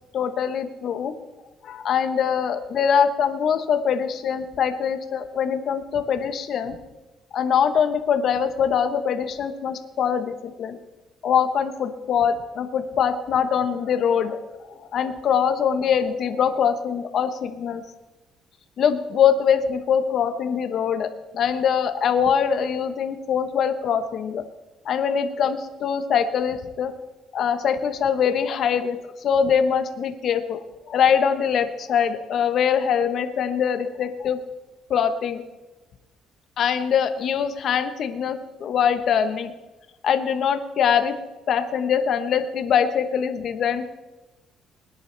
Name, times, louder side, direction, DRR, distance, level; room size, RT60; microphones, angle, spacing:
voice 1, 0.1-1.1 1.6-6.7 7.3-10.8 11.2-14.4 14.7-17.8 18.8-24.4 24.8-26.9 27.3-30.6 30.9-34.4 34.9-35.4 36.6-39.5 40.0-41.2 41.5-43.9, left 7 dB, 60° left, 9 dB, 1.1 m, -23 dB
20.5 x 10.5 x 3.4 m, 1.1 s
cardioid pair, 110°, 0 cm